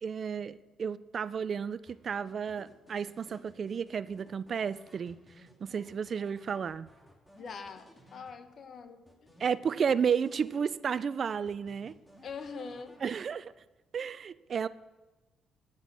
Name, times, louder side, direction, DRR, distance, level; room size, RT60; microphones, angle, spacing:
voice 1, 0.0-5.2 5.6-6.9 9.4-12.0 13.0-13.5 13.9-14.7, right 7 dB, 50° right, 17 dB, 0.4 m, -32 dB
Simple Hardstyle Melody, 1.9-8.7 9.1-11.1 11.5-13.5, equal, 10° left, 2.1 m, -58 dB
voice 2, 7.4-9.3 12.2-12.9, left 5 dB, 55° left, 9 dB, 1.0 m, -43 dB
9.9 x 7.4 x 6.0 m, 1.1 s
cardioid pair, 90°, 0 cm